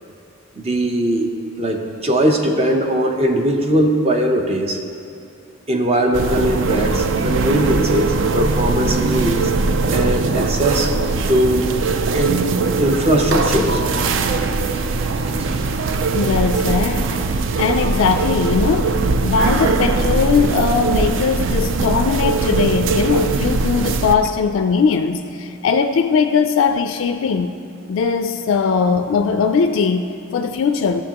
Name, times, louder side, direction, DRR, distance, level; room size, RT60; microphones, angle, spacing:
voice 1, 0.6-1.3 1.6-4.8 5.7-9.5 9.9-10.9 11.3-11.7 12.1-12.5 12.8-13.8 14.7-14.8 15.3-15.5, right 1 dB, 30° right, 3 dB, 0.7 m, -19 dB
sound 1, 6.1-24.2, right 3 dB, 60° right, 0.4 m, -20 dB
voice 2, 16.1-17.2 17.6-19.0 19.2-27.6 27.9-31.0, left 5 dB, 65° left, 8 dB, 0.3 m, -19 dB
13.0 x 6.8 x 2.9 m, 2.6 s
head